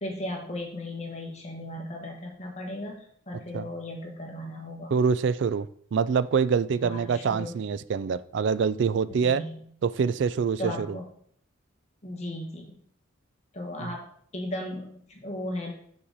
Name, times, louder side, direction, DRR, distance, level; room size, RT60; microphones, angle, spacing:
voice 1, 0.0-4.9 6.8-7.6 9.1-9.6 10.6-11.0 12.0-12.7 13.5-14.1 14.3-15.7, left 1 dB, 30° left, 0 dB, 1.3 m, -36 dB
voice 2, 4.9-9.4 9.8-11.0 13.8-13.9, right 6 dB, 60° right, 16 dB, 0.3 m, -25 dB
6.3 x 5.8 x 4.0 m, 0.63 s
head